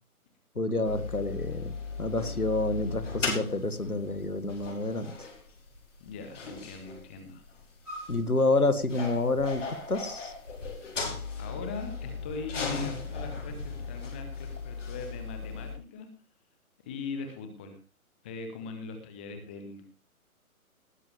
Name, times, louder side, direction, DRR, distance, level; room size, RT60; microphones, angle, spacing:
voice 1, 0.6-1.7 2.0-5.3 8.1-10.3, left 2 dB, 85° left, 11 dB, 1.9 m, -28 dB
sound 1, 0.8-15.8, left 4 dB, 55° left, 5.3 m, -38 dB
voice 2, 6.0-7.4 11.4-16.1 16.8-17.8 18.2-19.9, left 4 dB, 10° left, 7 dB, 0.6 m, -40 dB
19.0 x 10.5 x 3.3 m, 0.34 s
figure-of-eight pair, 135°, 43 cm